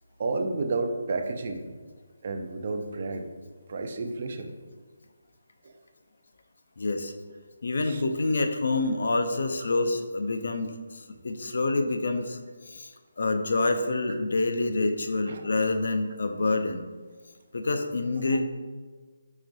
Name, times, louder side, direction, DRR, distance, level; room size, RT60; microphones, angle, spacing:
voice 1, 0.2-1.7 2.2-3.3 3.7-4.5 5.6-5.8 7.9-8.0 9.6-9.7 14.1-14.2 15.3-15.5 18.3-18.4, right 3 dB, 45° right, 6 dB, 0.4 m, -31 dB
voice 2, 6.8-7.1 7.6-12.4 12.7-12.9 13.2-16.9 17.5-18.4, left 2 dB, 60° left, 6 dB, 0.4 m, -27 dB
4.8 x 2.9 x 2.6 m, 1.4 s
figure-of-eight pair, 150°, 0 cm